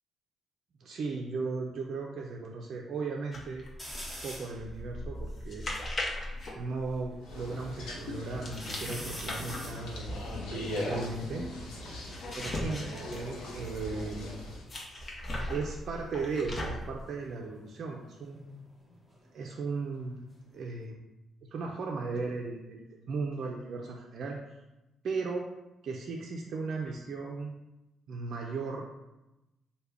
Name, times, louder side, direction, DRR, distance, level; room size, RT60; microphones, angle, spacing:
voice 1, 0.8-3.6 4.2-5.7 6.5-11.4 12.3-14.3 15.5-18.6 19.3-20.3 20.5-20.9 21.5-24.4 25.0-25.4 25.8-27.5 28.1-28.8, right 4 dB, 60° right, -1 dB, 0.3 m, -36 dB
sound 1, 3.3-7.4 8.4-14.0 14.7-17.0, left 1 dB, 40° left, 0.7 m, -39 dB
sound 2, 3.8-4.6 5.2-5.3 5.5-7.0 7.5-8.1 8.5-11.9 12.8-14.7 15.0-15.5 17.1-19.7 20.1-20.8, equal, 5° left, 0.8 m, -48 dB
sound 3, 7.2-14.6, left 1 dB, 90° left, 0.6 m, -39 dB
3.2 x 2.1 x 3.5 m, 0.98 s
cardioid pair, 90°, 0 cm